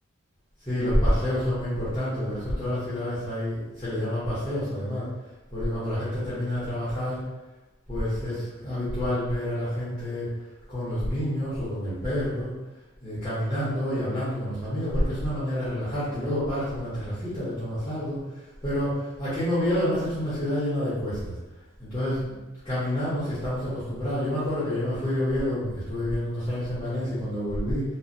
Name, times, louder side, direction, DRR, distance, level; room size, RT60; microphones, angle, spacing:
voice 1, 0.7-5.1 5.5-7.2 7.9-10.3 10.7-12.5 13.0-21.3 21.8-27.8, equal, 15° left, -13 dB, 0.9 m, -28 dB
3.1 x 2.2 x 2.6 m, 1.1 s
head